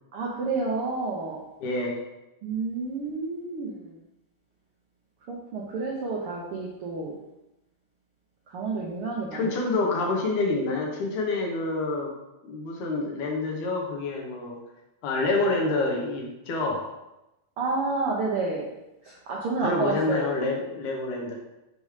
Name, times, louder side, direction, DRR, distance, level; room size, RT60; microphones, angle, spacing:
voice 1, 0.1-1.4 2.4-3.9 5.3-7.1 8.5-9.5 17.6-18.6 19.3-20.3, right 3 dB, 80° right, -3 dB, 1.2 m, -29 dB
voice 2, 1.6-2.0 9.3-12.1 12.4-14.6 15.0-16.8 19.6-21.4, left 3 dB, 70° left, -1 dB, 2.4 m, -27 dB
6.8 x 5.4 x 3.2 m, 0.94 s
omnidirectional pair, 3.7 m